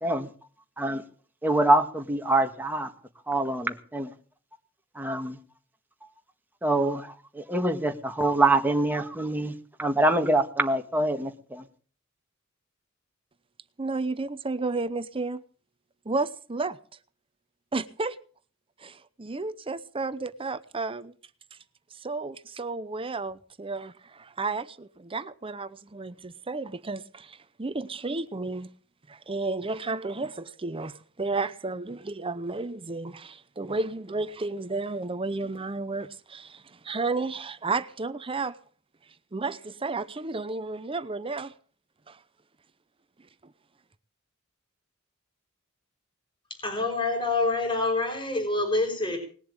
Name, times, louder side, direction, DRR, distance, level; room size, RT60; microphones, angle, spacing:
voice 1, 1.4-2.9 3.3-4.1 4.9-5.4 6.6-11.6, right 2 dB, 10° right, 1.6 m, -25 dB
voice 2, 13.8-15.4 16.1-16.8 17.7-18.2 18.8-21.1 21.5-21.6 21.9-28.7 29.1-38.6 39.3-41.5 42.1-42.2, right 3 dB, 25° right, 0.7 m, -32 dB
voice 3, 46.6-49.2, left 3 dB, 25° left, 4.6 m, -26 dB
19.5 x 7.3 x 8.9 m
head